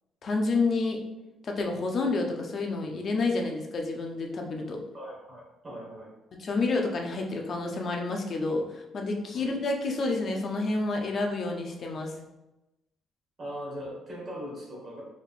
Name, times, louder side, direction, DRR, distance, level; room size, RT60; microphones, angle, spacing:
voice 1, 0.2-1.0 1.4-4.8 6.4-12.1, left 3 dB, 40° left, 2 dB, 0.6 m, -29 dB
voice 2, 4.9-6.1 9.3-9.5 13.4-15.0, equal, 30° right, -4 dB, 1.4 m, -40 dB
4.6 x 3.4 x 2.5 m, 0.97 s
cardioid pair, 155°, 0 cm